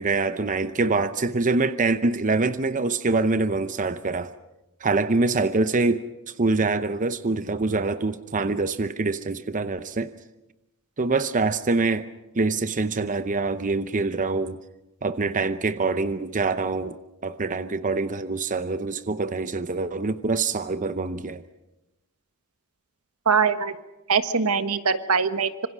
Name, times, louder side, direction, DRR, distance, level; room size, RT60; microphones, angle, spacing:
voice 1, 0.0-4.3 4.8-10.1 11.0-12.1 12.3-14.6 15.0-21.4, right 3 dB, 35° right, 0.8 m, -25 dB
voice 2, 23.2-23.7 24.1-25.7, right 5 dB, 80° right, 1.4 m, -22 dB
26.0 x 25.5 x 6.3 m
head